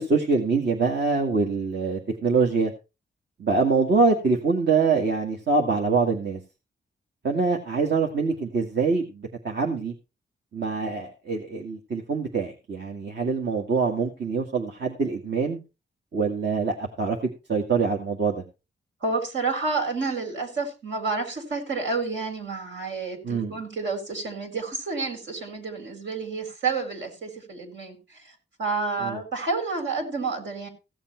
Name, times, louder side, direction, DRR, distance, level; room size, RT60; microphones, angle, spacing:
voice 1, 0.0-2.7 3.4-6.4 7.2-9.9 10.5-15.6 16.1-17.2 17.5-18.4 23.2-23.6 29.0-29.2, right 4 dB, 60° right, 1 dB, 1.9 m, -24 dB
voice 2, 19.0-28.0 28.6-30.7, right 4 dB, 75° right, 4 dB, 4.4 m, -29 dB
16.0 x 7.4 x 4.5 m, 0.29 s
cardioid pair, 85°, 19 cm